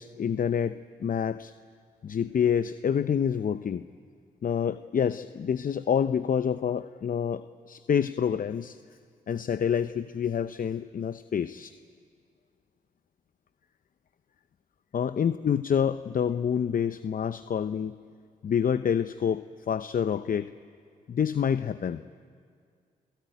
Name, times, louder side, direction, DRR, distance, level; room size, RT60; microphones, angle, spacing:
voice 1, 0.0-1.5 2.0-3.8 4.4-8.8 9.3-11.7 14.9-18.0 18.4-20.5 21.1-22.0, left 8 dB, 50° left, 13 dB, 0.7 m, -27 dB
29.0 x 16.5 x 9.2 m, 2.1 s
supercardioid pair, 45°, 18 cm